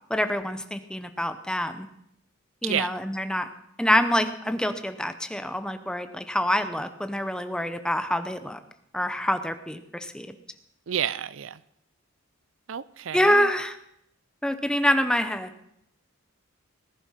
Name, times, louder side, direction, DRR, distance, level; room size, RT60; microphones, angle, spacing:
voice 1, 0.1-1.9 2.6-3.5 3.8-8.6 8.9-10.3 13.1-13.8 14.4-15.5, left 1 dB, 5° left, 10 dB, 0.8 m, -26 dB
voice 2, 10.9-11.6 12.7-13.5, right 9 dB, 65° right, 18 dB, 0.5 m, -30 dB
19.0 x 11.0 x 5.7 m, 0.76 s
head